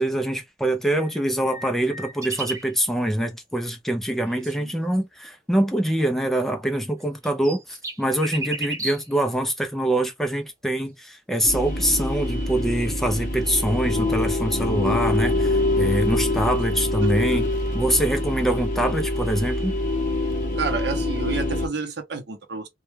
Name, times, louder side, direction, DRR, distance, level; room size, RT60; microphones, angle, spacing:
voice 1, 0.0-17.5 17.7-19.8, right 1 dB, ahead, 0.4 m, -24 dB
sound 1, 0.9-2.8 7.0-9.2 12.1-12.2, right 2 dB, 15° right, 0.8 m, -34 dB
voice 2, 4.3-4.7 17.0-17.4 20.6-22.7, right 4 dB, 65° right, 0.7 m, -30 dB
sound 2, 11.4-21.7, left 1 dB, 45° left, 0.7 m, -25 dB
2.2 x 2.2 x 3.0 m
head